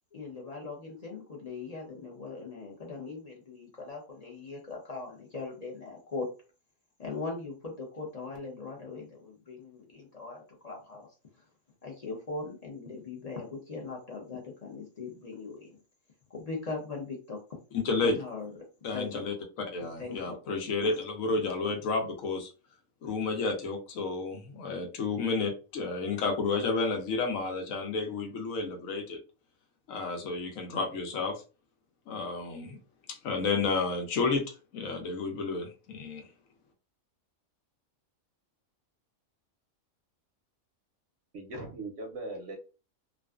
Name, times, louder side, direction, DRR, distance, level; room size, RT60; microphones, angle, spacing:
voice 1, 0.1-6.3 7.0-11.1 11.8-15.8 16.3-17.4 18.0-18.5 18.9-19.3 19.8-20.4 21.3-21.4, left 3 dB, 40° left, -1 dB, 0.6 m, -40 dB
voice 2, 17.8-18.2 18.8-19.3 19.7-22.5 23.0-29.2 29.9-31.4 32.1-32.8 33.1-34.4 34.7-36.3, left 3 dB, 80° left, 3 dB, 1.1 m, -31 dB
voice 3, 41.3-42.6, right 2 dB, 60° right, 1 dB, 0.7 m, -39 dB
2.5 x 2.4 x 2.3 m, 0.33 s
omnidirectional pair, 1.4 m